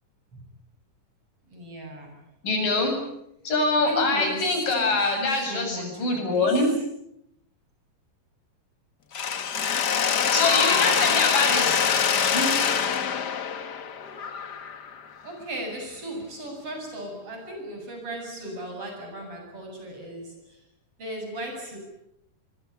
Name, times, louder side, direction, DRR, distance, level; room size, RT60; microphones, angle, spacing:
voice 1, 1.5-2.3 3.8-6.7 10.6-11.8 15.2-20.6 21.0-21.8, right 1 dB, 45° right, 3 dB, 9.0 m, -37 dB
voice 2, 2.4-2.9 3.4-6.7 10.3-11.8 12.2-12.5, left 2 dB, 85° left, 3 dB, 9.4 m, -24 dB
Mechanisms, 9.1-15.0, left 7 dB, 55° left, 1.1 m, -24 dB
24.0 x 24.0 x 8.6 m, 0.77 s
omnidirectional pair, 3.7 m